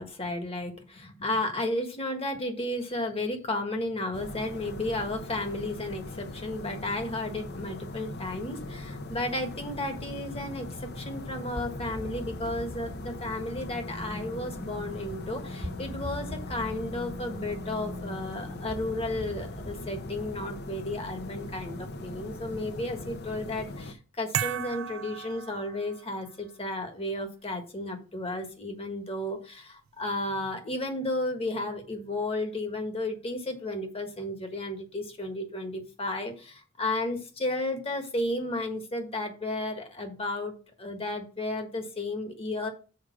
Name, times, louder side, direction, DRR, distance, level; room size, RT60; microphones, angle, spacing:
voice 1, 0.0-42.7, left 1 dB, 30° left, 5 dB, 1.6 m, -33 dB
sound 1, 4.1-23.9, left 2 dB, 55° left, 0.8 m, -40 dB
sound 2, 10.0-21.3, equal, 55° right, 1.5 m, -43 dB
sound 3, 24.3-26.2, right 9 dB, 85° right, 0.4 m, -34 dB
6.6 x 4.7 x 6.1 m, 0.35 s
head